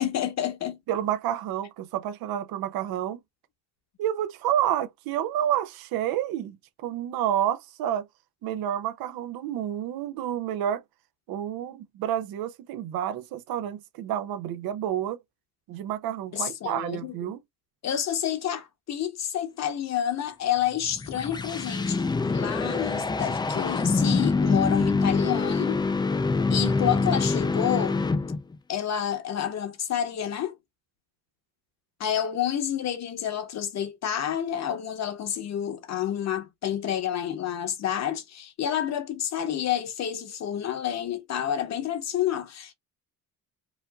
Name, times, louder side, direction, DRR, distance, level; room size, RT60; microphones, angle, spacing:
voice 1, 0.0-0.8 16.3-17.1 17.8-22.0 22.3-25.8 26.5-28.0 28.7-30.5 32.0-42.7, left 10 dB, 50° left, 0.9 m, -29 dB
voice 2, 0.9-3.2 4.0-8.1 8.4-10.8 11.3-15.2 15.7-17.4, right 11 dB, 80° right, 0.7 m, -29 dB
sound 1, 20.8-28.6, left 3 dB, 15° left, 0.3 m, -25 dB
4.9 x 2.6 x 2.3 m
cardioid pair, 145°, 35 cm